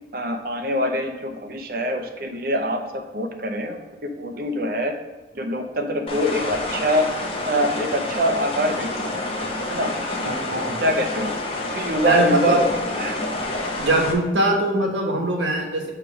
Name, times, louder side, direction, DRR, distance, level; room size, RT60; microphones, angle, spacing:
voice 1, 0.1-4.9 5.3-7.1 7.5-9.2 9.7-9.9 10.8-11.3 11.6-12.7 13.0-13.2, equal, 50° right, 5 dB, 0.7 m, -24 dB
sound 1, 6.1-14.1, left 2 dB, 30° left, 0.8 m, -28 dB
voice 2, 10.2-10.8 12.0-12.6 13.8-15.9, right 1 dB, 80° right, 0 dB, 1.3 m, -22 dB
6.9 x 3.3 x 4.9 m, 1.1 s
head